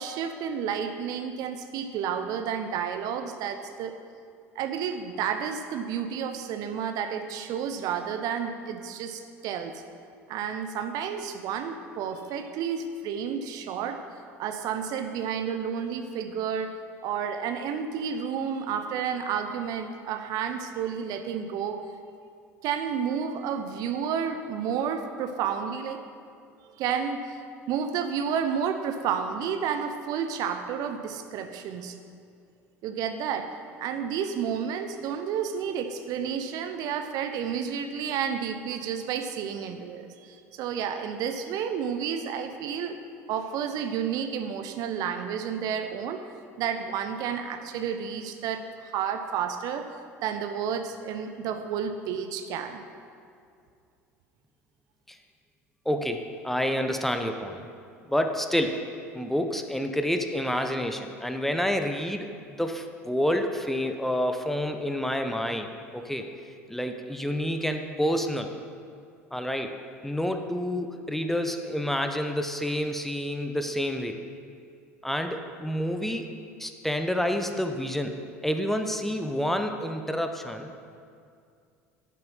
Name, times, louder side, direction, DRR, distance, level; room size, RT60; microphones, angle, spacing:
voice 1, 0.0-3.9 4.6-9.7 10.3-14.0 14.4-21.8 22.6-26.0 26.8-27.4 27.7-32.0 32.8-43.0 43.3-46.2 46.6-49.9 50.2-52.8, right 7 dB, 50° right, 8 dB, 0.8 m, -31 dB
voice 2, 55.8-57.7 58.1-58.8 59.1-62.3 62.6-66.3 66.7-68.5 69.3-69.7 70.0-74.2 75.0-76.3 76.6-80.7, equal, 5° left, 6 dB, 0.9 m, -28 dB
11.0 x 9.4 x 5.6 m, 2.4 s
figure-of-eight pair, 65°, 8 cm